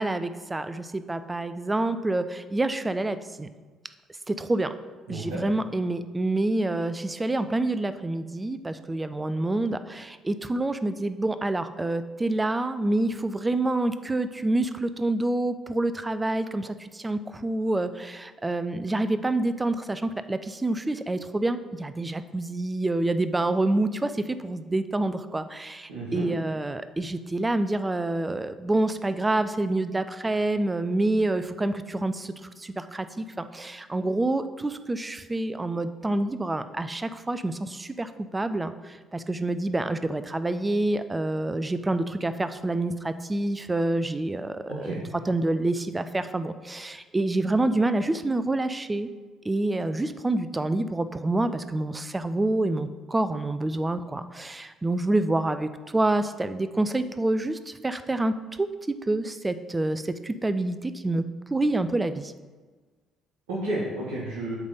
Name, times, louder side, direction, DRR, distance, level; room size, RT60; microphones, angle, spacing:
voice 1, 0.0-3.5 4.3-4.7 5.1-32.3 32.6-49.1 49.4-61.2 61.5-62.3, right 2 dB, 20° right, 12 dB, 0.5 m, -27 dB
voice 2, 5.1-5.4 25.9-26.2 44.7-45.0 63.5-64.6, right 1 dB, 80° right, -6 dB, 1.4 m, -31 dB
8.1 x 3.4 x 5.4 m, 1.4 s
hypercardioid pair, 50°, 0 cm